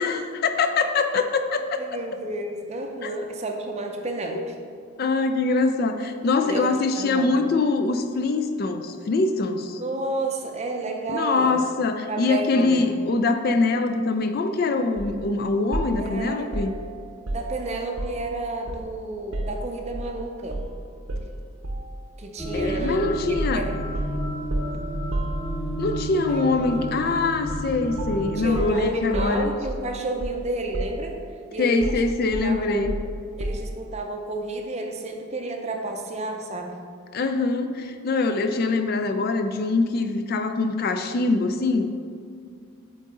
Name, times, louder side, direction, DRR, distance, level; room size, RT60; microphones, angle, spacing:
voice 1, 0.0-1.8 3.0-3.1 5.0-9.8 11.1-16.7 22.5-23.7 25.8-29.5 31.6-32.9 37.1-41.9, left 3 dB, 45° left, 7 dB, 0.3 m, -23 dB
voice 2, 1.8-4.5 6.4-7.3 9.8-11.6 12.1-12.9 16.0-16.6 17.3-20.6 22.2-23.8 26.3-26.4 26.7-26.8 28.4-31.2 31.5-32.1 32.4-33.0 33.4-36.8, right 2 dB, 30° right, 3 dB, 0.5 m, -31 dB
sound 1, 15.0-15.2 15.7-18.3 18.7-20.1 20.5-20.7 21.1-22.0 22.8-23.0 23.4-25.9 27.5-27.7 28.0-30.5 30.7-31.4 31.8-33.8, right 1 dB, 75° right, 0.7 m, -32 dB
sound 2, 22.4-28.5, right 1 dB, 25° left, 1.3 m, -31 dB
7.7 x 3.8 x 3.7 m, 2.2 s
head